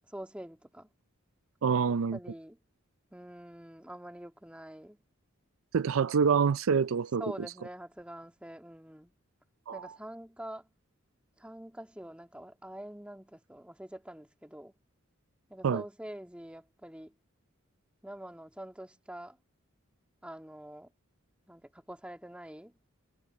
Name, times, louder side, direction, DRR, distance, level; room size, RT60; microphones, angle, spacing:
voice 1, 0.1-0.9 2.1-2.6 3.1-5.0 7.2-9.1 9.7-10.7 11.4-14.7 15.5-17.1 18.0-19.4 20.2-20.9 21.5-22.7, right 1 dB, 5° right, 1.8 m, -45 dB
voice 2, 1.6-2.2 5.7-7.2 9.7-9.9 15.6-15.8, right 6 dB, 75° right, 0.4 m, -26 dB
head